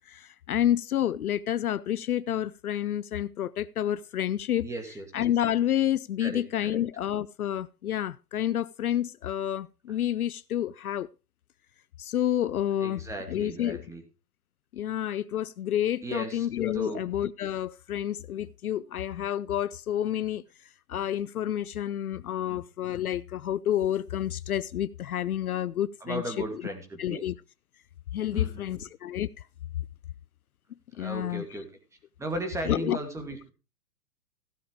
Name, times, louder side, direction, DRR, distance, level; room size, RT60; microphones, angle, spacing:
voice 1, 0.1-4.7 5.1-11.1 12.0-13.0 13.3-13.8 14.7-20.4 20.9-26.4 27.0-27.3 28.1-29.4 31.0-31.4 32.7-33.0, left 11 dB, 65° left, 0.6 m, -29 dB
voice 2, 4.6-5.0 6.2-6.8 9.9-10.0 12.8-14.0 16.0-16.5 16.7-17.1 22.3-22.6 26.0-27.2 28.3-28.8 31.0-31.7 32.2-33.5, right 2 dB, 5° right, 2.4 m, -36 dB
16.0 x 7.1 x 4.8 m
hypercardioid pair, 135°, 47 cm